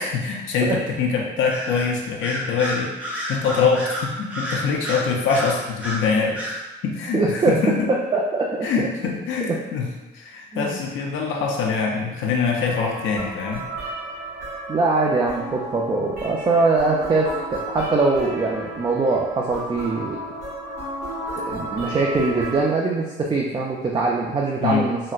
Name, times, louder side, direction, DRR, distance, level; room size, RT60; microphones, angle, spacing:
voice 1, 0.0-6.5 6.8-7.9 8.6-13.7 24.6-24.8, left 5 dB, 80° left, 0 dB, 0.5 m, -24 dB
Bird vocalization bird call bird song, 1.5-1.9 2.2-6.0 6.3-6.6, equal, 5° right, 0.8 m, -30 dB
voice 2, 7.1-7.6 8.1-8.7 9.4-9.6 10.5-10.8 14.7-20.2 21.5-25.0, right 3 dB, 25° right, -2 dB, 0.4 m, -22 dB
sound 1, 12.6-22.6, right 1 dB, 65° right, 1.4 m, -33 dB
4.0 x 2.1 x 2.4 m, 1.1 s
cardioid pair, 90°, 20 cm